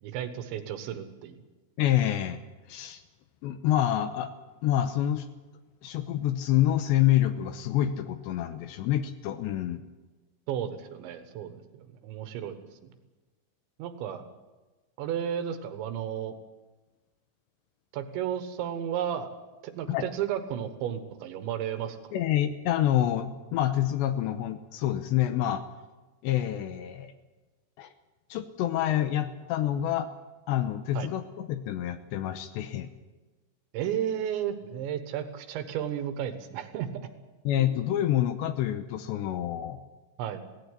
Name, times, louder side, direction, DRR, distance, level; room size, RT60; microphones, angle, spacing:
voice 1, 0.0-1.4 10.5-12.7 13.8-14.2 15.0-16.4 17.9-19.3 19.6-22.1 31.0-31.1 33.7-36.9 37.6-37.7 40.2-40.4, right 9 dB, 75° right, 10 dB, 3.4 m, -33 dB
voice 2, 1.8-2.4 2.7-3.0 3.4-4.3 4.6-5.3 5.8-9.8 19.9-20.1 22.1-25.6 26.2-27.1 27.8-27.9 28.3-30.1 30.5-32.9 37.5-39.8, left 12 dB, 80° left, 11 dB, 2.8 m, -27 dB
17.0 x 16.5 x 9.8 m, 1.2 s
omnidirectional pair, 5.6 m